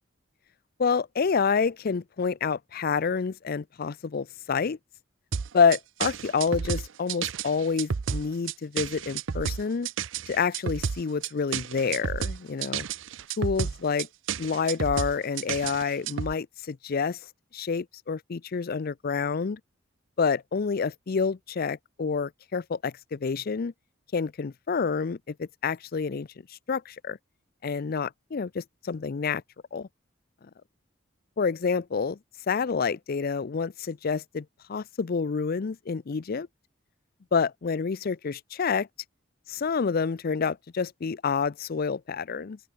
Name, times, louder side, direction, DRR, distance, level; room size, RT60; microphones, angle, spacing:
voice 1, 0.8-4.8 5.5-9.9 10.3-12.9 13.4-14.1 14.4-17.2 17.5-19.6 20.2-23.7 24.1-26.3 26.7-27.2 27.6-29.4 29.7-29.9 31.4-32.2 32.5-36.5 37.3-38.9 39.5-42.6, left 5 dB, 50° left, 0.5 m, -28 dB
sound 1, 5.3-16.3, right 6 dB, 70° right, 0.6 m, -31 dB
open air
head